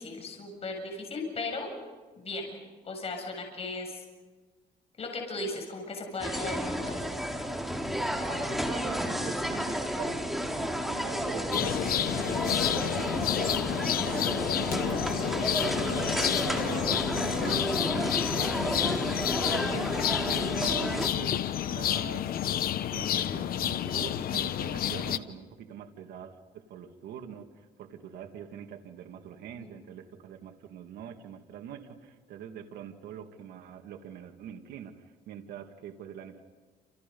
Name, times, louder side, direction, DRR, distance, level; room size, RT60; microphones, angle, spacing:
voice 1, 0.0-1.7 2.2-2.5 2.8-4.0 5.0-7.0 29.5-29.7, left 3 dB, 35° left, 2 dB, 7.5 m, -36 dB
sound 1, 6.2-21.1, equal, ahead, 3.6 m, -32 dB
voice 2, 8.1-36.4, right 8 dB, 75° right, 4 dB, 2.1 m, -44 dB
sound 2, 11.5-25.2, left 11 dB, 60° left, 1.1 m, -30 dB
29.0 x 28.5 x 5.4 m, 1.3 s
cardioid pair, 110°, 17 cm